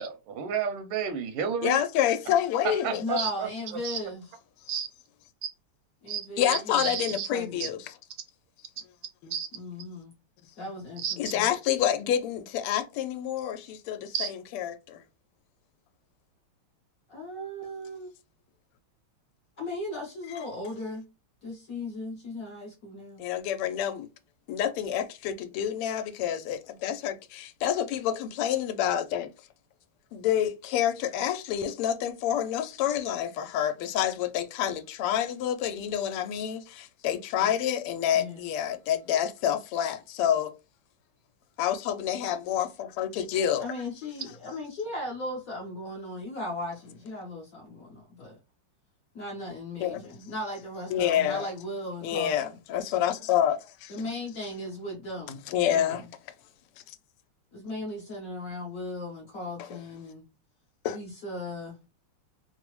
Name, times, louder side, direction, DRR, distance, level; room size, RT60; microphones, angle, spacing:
voice 1, 0.0-1.8 2.6-3.5 3.8-4.0 4.7-4.9 6.1-6.2 6.5-7.3 7.6-7.7 9.3-9.5 11.0-11.1 14.1-14.3, right 7 dB, 85° right, 1.5 m, -31 dB
voice 2, 1.6-3.0 6.4-7.9 9.2-9.3 11.2-15.0 20.3-20.4 23.2-24.1 24.5-29.3 30.1-40.5 41.6-43.7 49.8-50.0 50.9-51.5 52.0-54.0 55.5-56.0 59.6-59.8 60.8-61.0, left 10 dB, 90° left, 1.5 m, -28 dB
voice 3, 3.0-4.3 6.0-7.7 9.5-10.1 10.6-11.5 17.1-18.1 19.6-21.0 21.4-23.2 38.1-38.4 43.6-48.4 49.1-52.5 53.9-55.4 55.7-56.0 57.5-60.2 60.9-61.8, left 1 dB, 65° left, 0.9 m, -37 dB
3.8 x 2.0 x 3.0 m
omnidirectional pair, 2.4 m